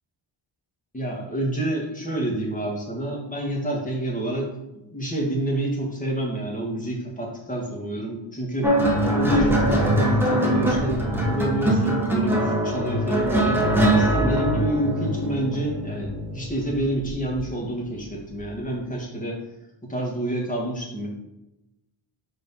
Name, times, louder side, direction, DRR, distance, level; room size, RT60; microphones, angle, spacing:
voice 1, 0.9-4.5 4.9-8.7 9.1-13.6 13.9-19.4 19.8-21.1, right 1 dB, 15° left, -2 dB, 1.6 m, -28 dB
sound 1, 8.6-17.4 18.3-18.6, right 1 dB, 5° right, 1.1 m, -22 dB
5.0 x 4.5 x 5.5 m, 0.92 s
wide cardioid pair, 155°, 48 cm